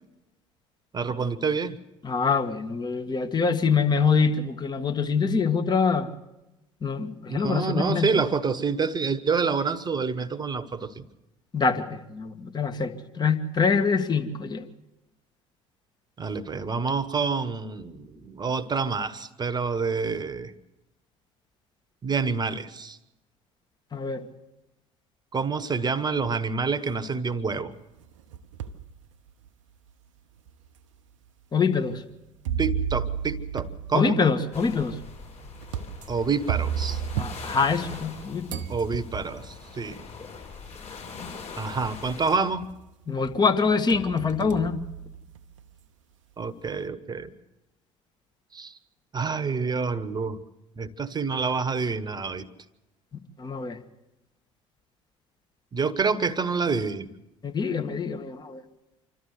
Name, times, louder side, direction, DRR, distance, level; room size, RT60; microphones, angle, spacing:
voice 1, 0.9-1.8 7.3-11.0 16.2-20.5 22.0-23.0 25.3-27.7 32.6-34.2 36.1-37.0 38.7-40.0 41.6-42.6 46.4-47.3 48.5-48.7 49.1-50.4 50.8-52.5 55.7-57.1, right 5 dB, 25° right, 15 dB, 1.3 m, -27 dB
voice 2, 2.0-6.1 6.8-8.2 11.5-14.6 23.9-24.2 31.5-32.0 33.9-35.0 37.2-38.6 43.1-44.8 53.4-53.8 57.4-58.6, left 5 dB, 25° left, 7 dB, 1.6 m, -25 dB
sound 1, 28.0-28.9 29.5-29.6 30.5-30.6 32.4-38.2 38.5-39.5 40.7-40.8 41.3-41.7 42.1-42.9 43.2-45.6, right 8 dB, 75° right, 0.9 m, -33 dB
sound 2, 34.5-42.4, left 5 dB, 40° left, 6.8 m, -42 dB
26.5 x 13.0 x 8.1 m, 0.97 s
figure-of-eight pair, 60°, 16 cm